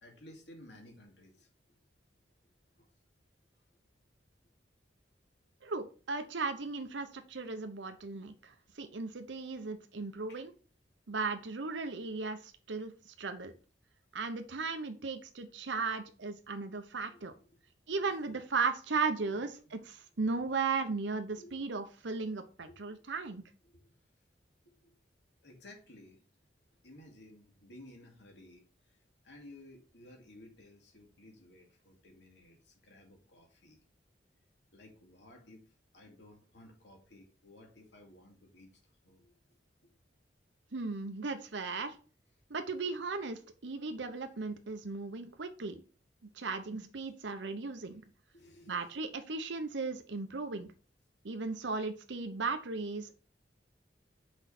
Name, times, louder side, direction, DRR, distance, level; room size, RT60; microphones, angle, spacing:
voice 1, 0.0-1.8 2.8-2.9 10.3-10.5 15.6-15.7 17.0-18.4 19.3-19.8 20.2-20.4 21.4-21.6 22.7-23.0 23.6-23.9 24.8-25.0 25.4-26.2 26.8-33.8 34.7-35.7 35.9-38.7 39.0-39.3 39.8-39.9 48.3-48.9, left 1 dB, 70° left, 2 dB, 2.4 m, -56 dB
voice 2, 5.6-10.5 11.1-13.5 14.1-17.3 17.9-23.4 40.7-42.0 42.5-45.8 46.4-48.0 48.7-50.7 51.2-53.1, right 4 dB, 80° right, 7 dB, 0.8 m, -36 dB
6.2 x 5.2 x 4.2 m, 0.36 s
head